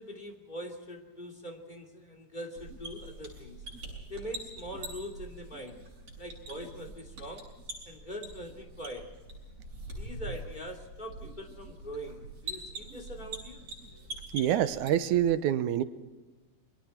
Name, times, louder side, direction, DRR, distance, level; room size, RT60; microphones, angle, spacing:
voice 1, 0.0-3.6 4.1-5.8 6.2-7.5 7.8-9.0 10.0-13.6, equal, 15° left, 1 dB, 2.7 m, -42 dB
sound 1, 2.6-15.3, right 2 dB, 50° right, 7.5 m, -44 dB
voice 2, 14.3-15.8, right 11 dB, 90° right, 12 dB, 2.4 m, -26 dB
28.0 x 22.5 x 4.5 m, 1.2 s
omnidirectional pair, 3.4 m